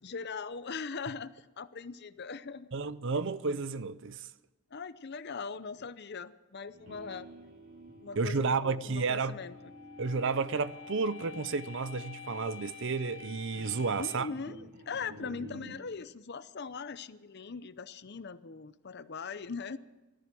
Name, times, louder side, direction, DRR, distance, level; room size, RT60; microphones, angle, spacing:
voice 1, 0.0-2.7 4.7-7.3 8.0-9.7 14.0-19.8, left 5 dB, 50° left, 0.6 m, -40 dB
voice 2, 2.7-4.3 8.2-9.4 10.0-14.3, right 4 dB, 55° right, 0.6 m, -32 dB
sound 1, 6.7-15.8, left 3 dB, 85° right, 4.0 m, -48 dB
16.0 x 14.0 x 6.1 m
head